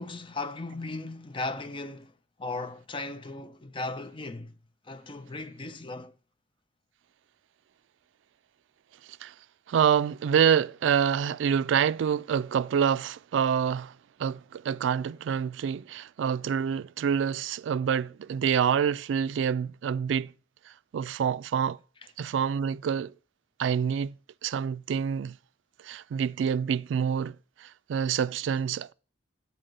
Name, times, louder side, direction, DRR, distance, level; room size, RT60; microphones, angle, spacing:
voice 1, 0.0-2.1 2.4-4.5 4.9-6.1, left 2 dB, 25° left, 0.6 m, -37 dB
voice 2, 9.7-13.9 14.2-20.3 20.9-21.8 22.2-23.1 23.6-24.1 24.4-25.4 25.8-28.9, right 7 dB, 85° right, 0.3 m, -27 dB
7.6 x 4.3 x 6.5 m
head